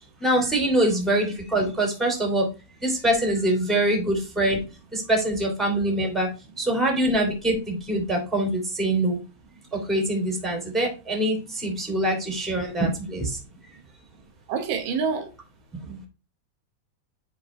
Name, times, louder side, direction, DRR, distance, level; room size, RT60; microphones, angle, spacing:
voice 1, 0.2-2.4 2.8-4.6 4.9-6.3 6.6-9.2 9.7-13.4, right 1 dB, ahead, 2.4 m, -24 dB
voice 2, 14.5-15.3 15.9-16.1, right 5 dB, 85° right, 3.0 m, -27 dB
9.3 x 4.7 x 3.2 m
omnidirectional pair, 3.7 m